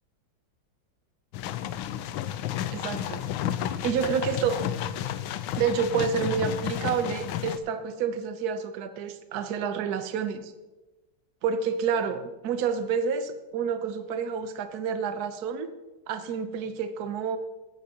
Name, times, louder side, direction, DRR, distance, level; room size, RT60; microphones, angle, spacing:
sound 1, 1.3-7.6, left 11 dB, 80° left, 1.4 m, -32 dB
voice 1, 2.7-3.2 3.8-4.6 5.5-10.5 11.4-15.7 16.1-17.4, right 6 dB, 60° right, 9 dB, 1.1 m, -29 dB
17.0 x 9.8 x 2.9 m, 1.1 s
omnidirectional pair, 2.3 m